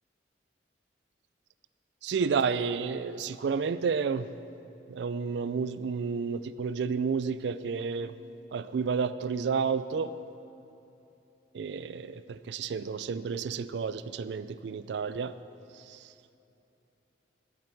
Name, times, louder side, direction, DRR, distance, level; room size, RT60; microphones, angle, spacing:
voice 1, 2.0-4.3 4.9-8.1 8.5-10.1 11.5-15.3, right 5 dB, 70° right, 14 dB, 0.3 m, -31 dB
14.5 x 8.6 x 4.5 m, 2.9 s
head